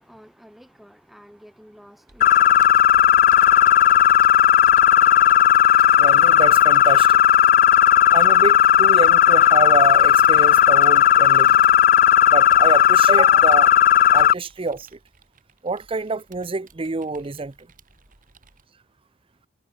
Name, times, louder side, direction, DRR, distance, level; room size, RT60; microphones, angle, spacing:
voice 1, 0.0-2.6, equal, ahead, 2.8 m, -49 dB
Computer keyboard, 2.1-18.6, right 4 dB, 45° right, 3.0 m, -53 dB
sound 1, 2.2-14.3, left 10 dB, 50° left, 0.4 m, -15 dB
voice 2, 6.0-7.2 8.1-11.7 12.3-13.7 14.1-14.9 15.6-17.5, right 3 dB, 30° right, 0.6 m, -26 dB
head